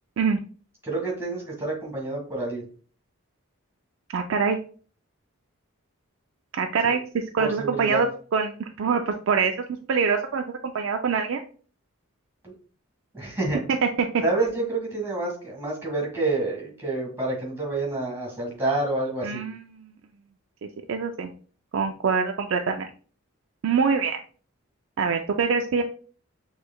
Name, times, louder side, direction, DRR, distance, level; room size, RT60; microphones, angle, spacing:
voice 1, 0.8-2.7 6.8-6.9 7.4-8.0 12.4-12.5 13.1-13.6 14.2-19.4, right 2 dB, 10° right, -2 dB, 1.7 m, -28 dB
voice 2, 4.1-4.6 6.5-8.1 8.3-9.5 9.9-11.4 13.7-14.1 19.2-19.9 20.9-21.3 21.7-22.9 23.6-24.2 25.0-25.8, right 5 dB, 60° right, 4 dB, 0.4 m, -24 dB
6.3 x 3.2 x 2.2 m, 0.41 s
head